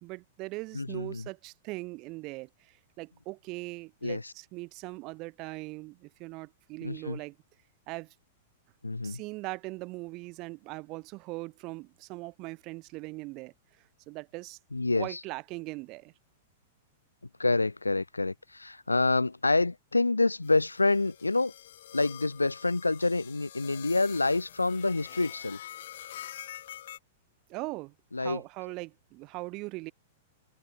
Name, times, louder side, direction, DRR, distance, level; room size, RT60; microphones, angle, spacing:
voice 1, 0.0-7.4 7.9-8.1 9.0-13.5 14.1-14.6 15.0-16.1 27.5-29.9, right 23 dB, 35° right, 0.8 m, -40 dB
voice 2, 0.7-1.3 4.0-4.3 6.8-7.2 8.8-9.2 14.7-15.2 17.4-21.5 21.9-25.6 28.1-28.4, left 3 dB, 80° left, 0.4 m, -27 dB
sound 1, 20.4-27.0, left 12 dB, 55° left, 1.5 m, -46 dB
open air
figure-of-eight pair, 100°, 0 cm